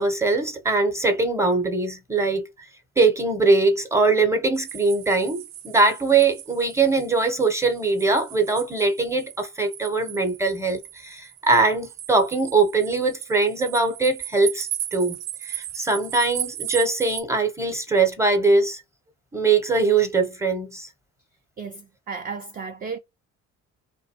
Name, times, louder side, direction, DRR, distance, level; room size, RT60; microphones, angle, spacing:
voice 1, 0.0-2.4 3.0-18.8 19.3-20.9, right 3 dB, 5° right, 0.8 m, -22 dB
sound 1, 4.5-17.2, right 12 dB, 80° right, 0.5 m, -37 dB
voice 2, 21.6-23.0, right 5 dB, 25° right, 0.4 m, -34 dB
2.6 x 2.1 x 2.8 m
hypercardioid pair, 50°, 40 cm